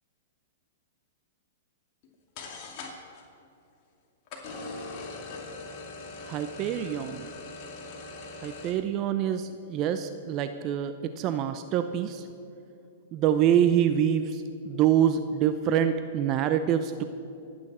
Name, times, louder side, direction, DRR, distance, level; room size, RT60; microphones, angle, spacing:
sound 1, 2.0-2.1 2.4-3.2 4.3-8.7, left 3 dB, 45° left, 2.6 m, -41 dB
voice 1, 6.3-7.2 8.4-12.3 13.1-17.0, right 9 dB, 35° right, 9 dB, 0.7 m, -26 dB
26.5 x 8.9 x 4.4 m, 2.7 s
hypercardioid pair, 120°, 0 cm